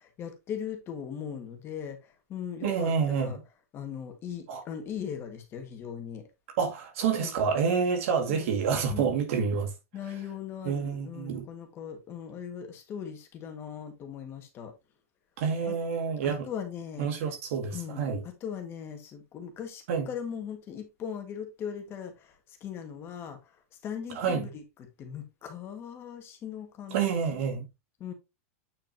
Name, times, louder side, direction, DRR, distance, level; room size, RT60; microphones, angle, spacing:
voice 1, 0.2-3.4 3.7-6.3 7.2-7.3 8.3-8.5 8.9-9.1 9.9-14.7 15.7-15.8 16.2-17.1 17.7-23.6 23.8-27.0 27.3-27.4 28.0-28.1, left 8 dB, 30° left, 1.9 m, -39 dB
voice 2, 2.6-3.3 4.5-4.6 6.6-9.7 10.6-11.4 15.4-16.5 17.0-18.2 19.9-20.1 24.1-24.5 26.9-27.7, right 6 dB, 65° right, 2.2 m, -28 dB
8.8 x 5.0 x 2.9 m
supercardioid pair, 130°, 8 cm